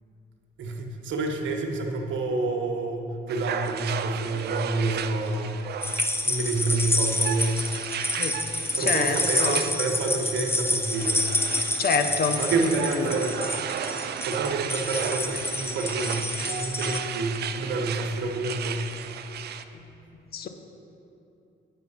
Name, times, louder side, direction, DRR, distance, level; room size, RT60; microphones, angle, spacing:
voice 1, 0.6-5.6 6.2-7.6 8.8-11.3 12.4-13.6 14.3-18.9, right 2 dB, 70° right, 2 dB, 1.1 m, -28 dB
sound 1, 3.3-19.6, right 8 dB, 55° right, 0.4 m, -35 dB
sound 2, 5.8-17.0, left 2 dB, 10° left, 0.6 m, -28 dB
voice 2, 8.9-9.6 11.8-12.4 19.7-19.8 20.3-20.5, left 5 dB, 50° left, 7 dB, 0.7 m, -26 dB
9.0 x 5.7 x 5.5 m, 2.7 s
cardioid pair, 90°, 20 cm